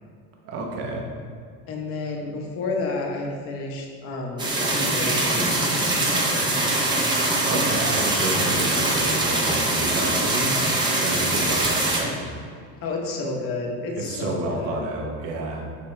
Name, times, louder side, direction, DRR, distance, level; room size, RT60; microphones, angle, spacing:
voice 1, 0.4-1.0 6.9-7.0 7.4-10.5 11.0-12.2 13.9-15.6, right 2 dB, 40° right, 0 dB, 0.9 m, -30 dB
voice 2, 1.7-5.9 12.8-14.8, left 3 dB, 35° left, 0 dB, 0.9 m, -30 dB
sound 1, 4.4-12.0, right 2 dB, 10° right, 0.6 m, -23 dB
7.0 x 4.3 x 3.2 m, 2.2 s
cardioid pair, 170°, 38 cm